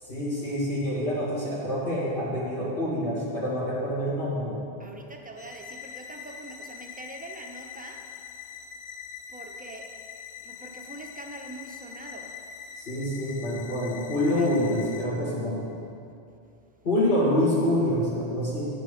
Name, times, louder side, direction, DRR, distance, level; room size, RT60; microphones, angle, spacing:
voice 1, 0.0-4.6 12.8-15.6 16.8-18.7, left 1 dB, 65° left, -8 dB, 2.0 m, -26 dB
voice 2, 4.8-8.0 9.3-9.9 10.4-12.3 14.4-14.5, right 2 dB, 10° right, 1 dB, 0.6 m, -43 dB
sound 1, 5.4-15.0, left 7 dB, 80° left, 1.0 m, -43 dB
8.7 x 6.9 x 5.1 m, 2.6 s
omnidirectional pair, 1.0 m